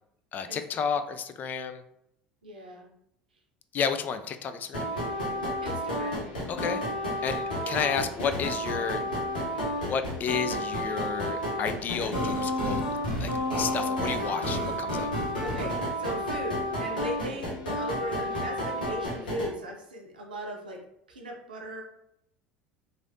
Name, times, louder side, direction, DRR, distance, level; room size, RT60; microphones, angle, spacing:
voice 1, 0.3-1.8 3.7-4.9 6.5-6.8 7.2-9.0 9.9-12.8 13.2-15.1, left 6 dB, 40° left, 9 dB, 0.3 m, -31 dB
voice 2, 2.4-2.9 5.6-6.3 7.6-7.9 15.4-20.8 21.1-21.8, right 1 dB, 85° right, 1 dB, 0.6 m, -38 dB
sound 1, 4.7-19.5, equal, 85° left, 0.9 m, -31 dB
3.2 x 2.6 x 2.6 m, 0.77 s
hypercardioid pair, 70°, 5 cm